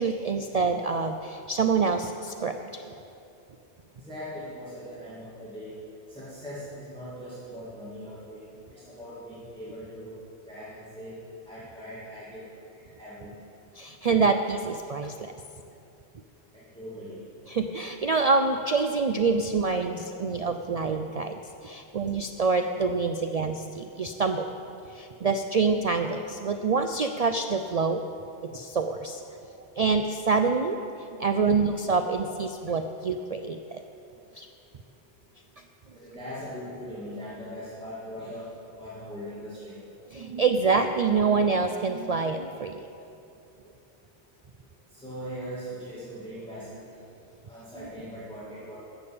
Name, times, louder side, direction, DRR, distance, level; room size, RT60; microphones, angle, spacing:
voice 1, 0.0-2.9 13.8-15.3 17.5-24.5 24.9-28.0 28.4-29.2 29.8-30.8 31.2-33.8 34.4-34.5 40.1-42.9, right 4 dB, 50° right, 6 dB, 0.4 m, -26 dB
voice 2, 4.0-5.8 6.1-8.5 8.9-10.1 10.5-11.2 11.5-12.5 13.0-13.4 16.5-17.2 35.9-38.5 38.8-39.8 44.9-46.8 47.5-48.8, equal, 5° left, -9 dB, 2.3 m, -40 dB
13.5 x 7.0 x 8.5 m, 2.7 s
omnidirectional pair, 1.1 m